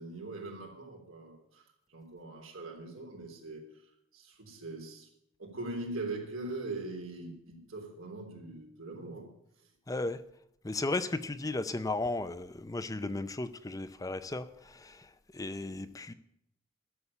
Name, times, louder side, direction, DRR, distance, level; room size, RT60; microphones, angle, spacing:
voice 1, 0.0-1.6 1.9-3.6 4.1-5.1 5.4-9.3, right 2 dB, 85° right, 2 dB, 3.5 m, -41 dB
voice 2, 9.9-10.2 10.6-16.1, left 2 dB, 15° left, 12 dB, 0.5 m, -35 dB
12.5 x 7.1 x 9.7 m, 0.76 s
head